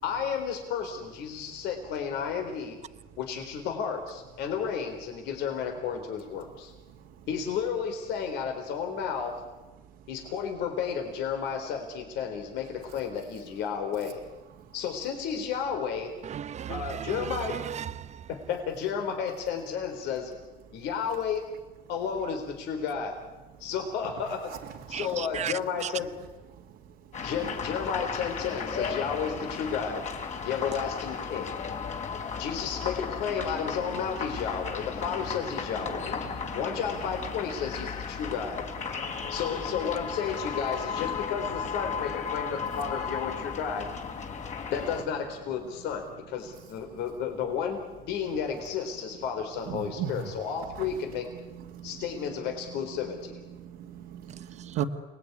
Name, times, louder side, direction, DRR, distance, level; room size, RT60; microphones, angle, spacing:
voice 1, 0.0-2.8 3.2-6.7 7.3-9.4 10.1-14.2 14.7-16.1 16.7-17.6 18.3-20.3 20.7-21.4 21.9-23.2 23.6-26.1 27.2-30.1 30.4-31.5 32.4-36.2 36.5-38.7 39.3-43.9 44.7-51.3 51.8-53.3, left 7 dB, 90° left, 4 dB, 4.0 m, -32 dB
voice 2, 16.2-18.3 24.9-25.5 25.8-25.9 54.7-54.8, right 9 dB, 40° right, 16 dB, 0.8 m, -35 dB
sound 1, 27.1-45.0, left 6 dB, 45° left, 3.7 m, -35 dB
voice 3, 49.7-50.3 50.8-50.9 51.7-51.9 53.6-54.8, right 10 dB, 85° right, 1 dB, 2.1 m, -35 dB
29.5 x 20.0 x 9.6 m, 1.2 s
cardioid pair, 110°, 17 cm